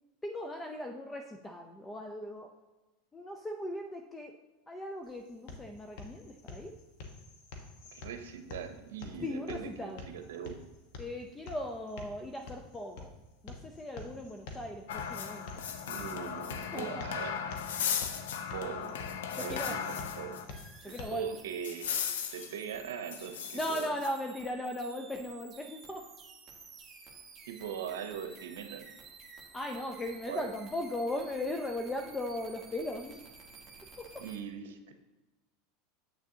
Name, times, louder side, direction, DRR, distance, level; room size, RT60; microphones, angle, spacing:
voice 1, 0.2-2.5 3.1-4.4 4.7-6.8 9.2-10.1 11.0-13.1 13.4-15.5 16.7-17.0 19.3-19.8 20.8-21.3 23.5-26.1 29.5-33.2 34.0-34.3, left 1 dB, 15° left, 4 dB, 0.6 m, -38 dB
sound 1, 5.0-21.0, left 3 dB, 65° left, 1.2 m, -49 dB
voice 2, 7.9-10.6 15.9-17.4 18.5-19.0 19.4-20.4 20.9-21.9 22.3-23.9 27.5-28.9 30.3-30.5 34.2-34.9, right 8 dB, 85° right, 8 dB, 0.7 m, -41 dB
sound 2, 14.9-20.6 20.9-21.0 21.6-22.6 23.1-24.1, left 7 dB, 85° left, 0.6 m, -36 dB
sound 3, 20.5-34.4, right 5 dB, 25° right, 1.3 m, -53 dB
8.1 x 6.5 x 2.8 m, 1.1 s
supercardioid pair, 115°, 0 cm